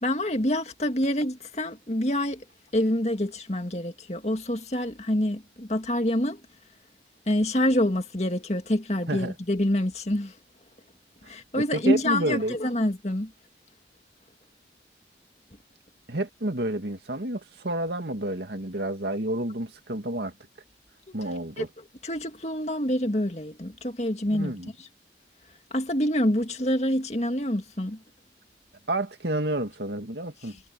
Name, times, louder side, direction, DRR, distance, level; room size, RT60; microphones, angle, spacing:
voice 1, 0.0-2.4 2.7-6.4 7.3-10.3 11.2-13.3 21.1-21.2 21.6-21.7 22.0-24.6 25.7-28.0 30.5-30.6, left 1 dB, 40° left, 2.2 m, -26 dB
voice 2, 11.2-12.6 16.1-20.3 21.1-21.7 24.3-24.7 28.9-30.6, right 1 dB, 70° right, 2.2 m, -30 dB
head